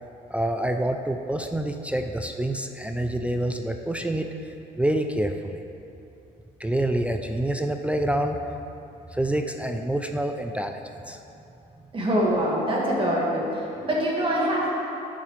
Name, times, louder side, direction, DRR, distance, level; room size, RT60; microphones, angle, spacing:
voice 1, 0.3-4.3 4.8-5.6 6.6-8.4 9.1-11.2, right 1 dB, 5° right, 5 dB, 0.4 m, -27 dB
voice 2, 11.9-14.7, equal, 30° right, -4 dB, 1.9 m, -24 dB
10.0 x 7.2 x 3.3 m, 2.8 s
cardioid pair, 110°, 17 cm